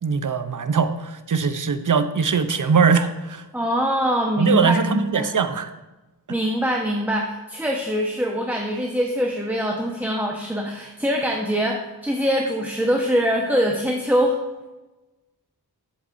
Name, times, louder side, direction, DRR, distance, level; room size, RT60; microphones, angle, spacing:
voice 1, 0.0-3.4 4.4-5.7, right 5 dB, 55° right, 10 dB, 0.8 m, -21 dB
voice 2, 3.5-5.3 6.3-14.4, equal, 5° right, 0 dB, 1.2 m, -23 dB
11.5 x 7.8 x 2.7 m, 1.1 s
wide cardioid pair, 55°, 38 cm